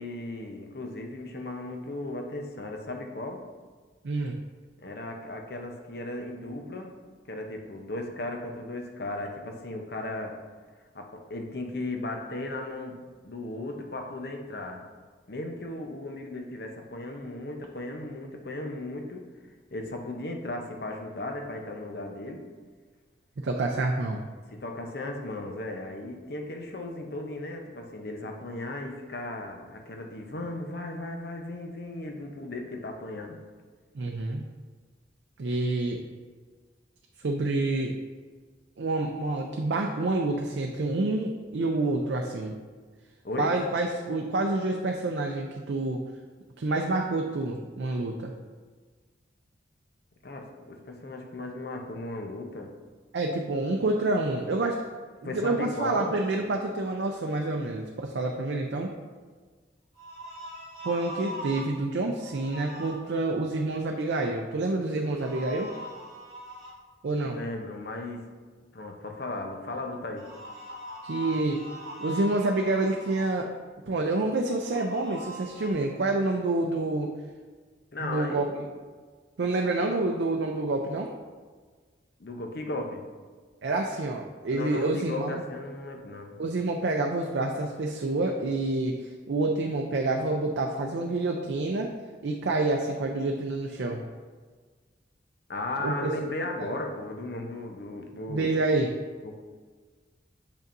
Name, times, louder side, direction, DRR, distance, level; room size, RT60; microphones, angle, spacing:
voice 1, 0.0-3.5 4.8-6.9 7.3-10.4 10.9-14.8 15.3-19.3 19.7-22.5 24.5-33.4 43.2-43.5 50.2-52.7 55.2-56.2 67.2-68.3 68.7-70.3 77.9-78.6 82.2-83.1 84.5-86.4 95.5-98.5 99.2-99.4, left 2 dB, 55° left, 3 dB, 0.7 m, -36 dB
voice 2, 23.4-24.2 33.9-34.5 35.4-36.1 37.2-38.0 38.8-42.6 43.4-46.0 46.6-48.3 53.1-54.8 55.2-58.9 60.8-65.7 67.0-67.4 71.0-71.6 72.0-73.5 73.9-77.1 78.0-78.4 79.4-81.1 83.6-85.4 86.4-91.9 92.2-94.0 95.8-96.3 98.3-98.9, right 2 dB, 70° right, 2 dB, 0.4 m, -28 dB
sound 1, 59.9-61.7 62.2-62.9 65.1-66.7 70.2-73.2 74.6-75.7, equal, 35° left, 1.8 m, -41 dB
7.0 x 5.3 x 2.6 m, 1.5 s
head